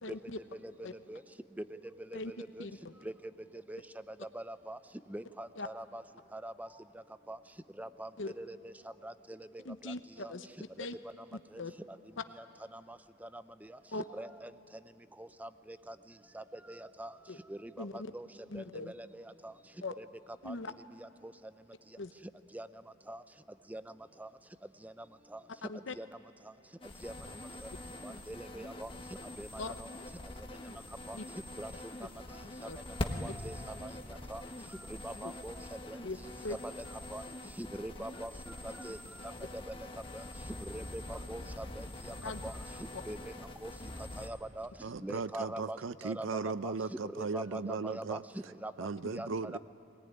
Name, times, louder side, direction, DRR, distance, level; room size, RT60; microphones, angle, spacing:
voice 1, 0.0-0.4 0.8-0.9 2.1-2.3 2.6-2.9 5.6-5.7 8.2-8.3 9.6-11.0 11.3-11.7 12.2-12.3 13.9-14.0 17.3-17.4 17.8-18.1 18.5-18.9 19.8-19.9 20.4-20.7 22.0-22.1 25.6-26.0 29.6-29.7 31.1-31.3 32.6-32.8 33.2-33.3 35.2-35.3 36.0-36.2 36.4-36.6 42.2-42.4 42.9-43.0, left 3 dB, 70° left, 9 dB, 0.9 m, -40 dB
voice 2, 2.1-2.6 3.0-3.1 3.7-3.8 4.3-4.8 5.1-6.0 6.3-6.7 7.3-7.4 7.8-8.1 8.4-8.7 9.0-9.1 9.8-9.9 10.2-10.3 13.2-13.4 14.2-14.5 15.2-15.9 16.3-17.1 17.5-18.3 18.5-18.6 19.1-19.5 20.0-20.1 20.5-20.6 22.5-22.7 23.1-23.2 23.7-23.8 24.2-24.3 24.8-24.9 25.3-25.4 26.0-26.1 27.0-27.1 28.0-28.9 29.4-29.9 31.1-31.2 31.6-31.7 33.2-33.6 33.8-33.9 34.3-34.4 35.0-35.6 35.9-36.0 37.1-37.2 37.6-38.3 38.6-39.0 39.2-39.3 40.1-40.2 40.7-41.9 42.4-42.5 43.1-43.3 43.6-43.7 44.2-44.7 45.0-45.8 46.0-46.7 47.1-48.2 48.6-48.7 49.1-49.6, right 1 dB, 10° right, 12 dB, 0.6 m, -42 dB
sound 1, 26.8-44.3, left 1 dB, 30° left, 1.4 m, -44 dB
voice 3, 44.8-48.2 48.8-49.6, right 4 dB, 85° right, 15 dB, 0.6 m, -37 dB
23.0 x 18.5 x 9.7 m, 3.0 s
head